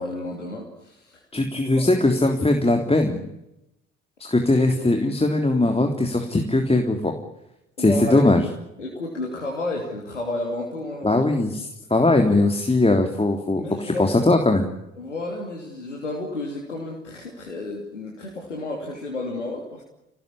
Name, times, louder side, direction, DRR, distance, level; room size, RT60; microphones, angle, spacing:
voice 1, 0.0-1.2 1.8-1.9 7.8-8.3 8.8-11.2 13.5-14.2 15.0-19.8, left 2 dB, 85° left, -1 dB, 3.0 m, -31 dB
voice 2, 1.3-3.2 4.2-7.1 7.8-8.4 11.0-11.5 11.9-14.6, left 2 dB, 15° left, 4 dB, 3.4 m, -20 dB
27.5 x 18.5 x 10.0 m, 0.89 s
figure-of-eight pair, 45°, 35 cm